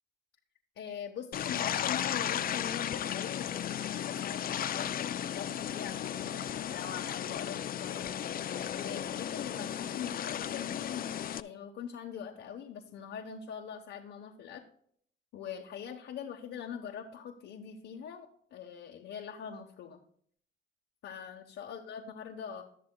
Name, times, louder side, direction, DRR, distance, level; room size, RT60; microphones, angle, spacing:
voice 1, 0.8-4.9 5.3-8.1 8.7-14.6 15.3-20.0 21.0-22.6, left 8 dB, 80° left, 0 dB, 1.1 m, -42 dB
sound 1, 1.3-11.4, left 10 dB, 45° left, 0.4 m, -35 dB
19.5 x 6.8 x 2.3 m, 0.63 s
cardioid pair, 90°, 20 cm